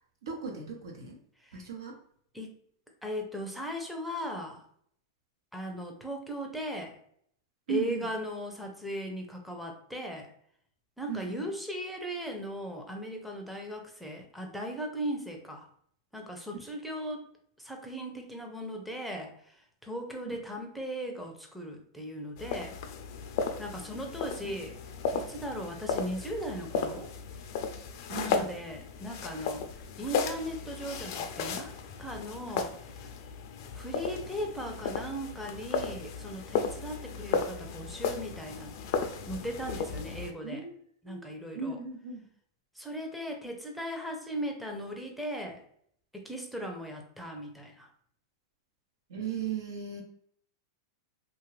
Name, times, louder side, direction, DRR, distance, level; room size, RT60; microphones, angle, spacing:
voice 1, 0.2-1.2 1.5-2.0 7.7-8.1 11.1-11.5 24.4-24.5 28.1-28.5 40.4-40.8 41.0-41.3 41.5-42.2 49.1-50.0, right 5 dB, 80° right, 1 dB, 0.9 m, -37 dB
voice 2, 3.0-4.6 5.5-7.0 7.7-10.3 11.0-15.7 16.1-17.2 17.6-22.8 23.6-24.7 25.1-27.1 28.2-29.7 30.0-32.8 33.7-38.9 39.3-40.6 41.0-41.8 42.8-45.6 46.1-47.9, equal, ahead, 1 dB, 0.6 m, -38 dB
sound 1, 22.4-40.3, left 5 dB, 55° left, 0.4 m, -35 dB
2.7 x 2.5 x 3.2 m, 0.65 s
hypercardioid pair, 130°, 2 cm